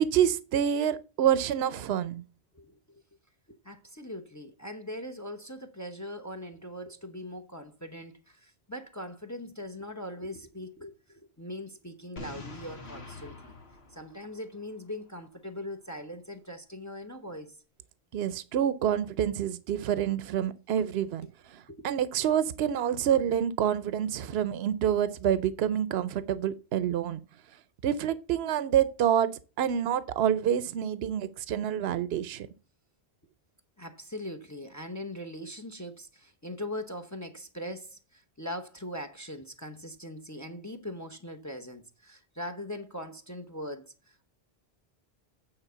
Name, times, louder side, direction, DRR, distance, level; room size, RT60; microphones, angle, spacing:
voice 1, 0.0-2.2 18.1-27.2 27.8-29.3 29.6-32.5, right 9 dB, 75° right, 0.9 m, -27 dB
voice 2, 2.5-3.0 3.5-13.6 13.9-17.5 21.7-21.8 22.2-22.3 33.8-44.3, left 1 dB, 20° left, 0.7 m, -41 dB
Boom, 12.2-15.0, left 2 dB, 90° left, 2.0 m, -45 dB
8.9 x 4.3 x 6.7 m
omnidirectional pair, 1.1 m